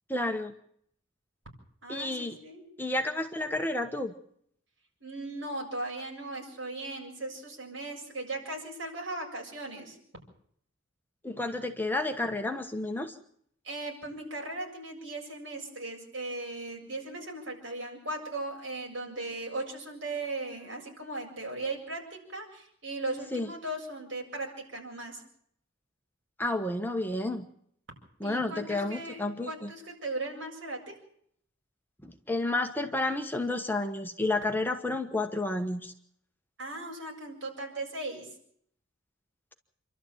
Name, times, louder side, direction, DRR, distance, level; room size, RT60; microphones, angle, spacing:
voice 1, 0.1-0.5 1.9-2.4 2.8-4.1 11.2-13.2 23.3-23.5 26.4-27.5 28.2-29.7 32.0-35.9, left 2 dB, 10° left, 5 dB, 1.2 m, -31 dB
voice 2, 1.8-2.7 5.0-10.0 13.6-25.2 28.2-31.0 36.6-38.3, right 2 dB, 65° right, 0 dB, 7.4 m, -38 dB
28.0 x 12.5 x 9.0 m, 0.67 s
head